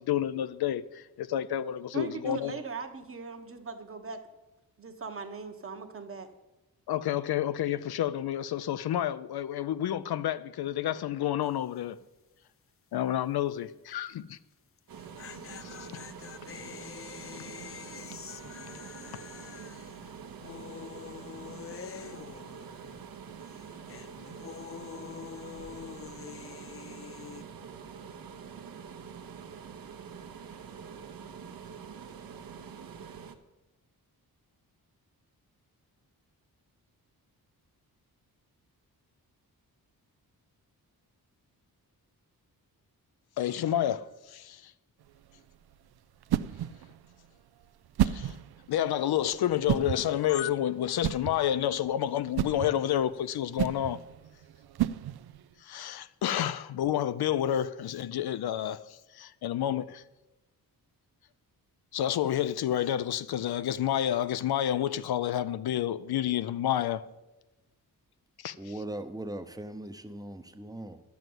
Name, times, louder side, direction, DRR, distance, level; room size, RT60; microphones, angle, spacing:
voice 1, 0.0-2.5 6.9-12.0 12.9-14.4 15.6-15.7 43.4-44.7 48.0-48.3 48.7-54.0 55.6-60.0 61.9-67.1 68.4-68.5, left 11 dB, 85° left, 0.6 m, -29 dB
voice 2, 1.9-4.2 4.8-6.3, right 4 dB, 35° right, 1.1 m, -39 dB
sound 1, 11.4-11.8 12.0-12.1 14.8-23.1 23.4-27.4, left 8 dB, 40° left, 0.4 m, -46 dB
sound 2, 14.9-33.4, right 6 dB, 65° right, 1.0 m, -45 dB
sound 3, 45.0-55.5, right 12 dB, 85° right, 0.5 m, -34 dB
voice 3, 68.6-71.0, right 1 dB, 10° right, 0.7 m, -39 dB
11.0 x 7.1 x 7.8 m
wide cardioid pair, 160°, 37 cm